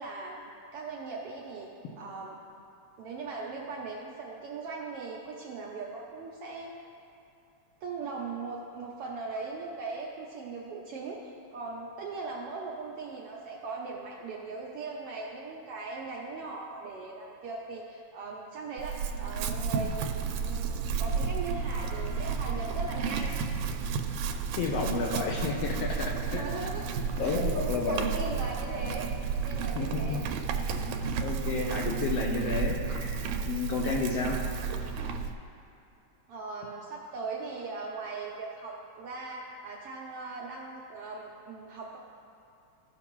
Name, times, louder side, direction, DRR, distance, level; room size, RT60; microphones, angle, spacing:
voice 1, 0.0-1.7 2.0-2.3 3.0-6.7 7.8-20.1 20.4-23.4 24.9-25.1 26.2-29.1 29.4-30.2 30.5-30.7 31.6-31.9 33.6-33.8 36.3-42.0, right 3 dB, 75° right, -3 dB, 1.4 m, -39 dB
Chewing mastication / Livestock farm animals working animals, 18.8-35.3, right 5 dB, 90° right, 2.0 m, -32 dB
voice 2, 24.6-26.5 27.2-28.1 29.7-30.2 30.7-34.4, left 4 dB, 70° left, 0 dB, 1.6 m, -31 dB
15.5 x 5.9 x 3.0 m, 2.6 s
omnidirectional pair, 3.3 m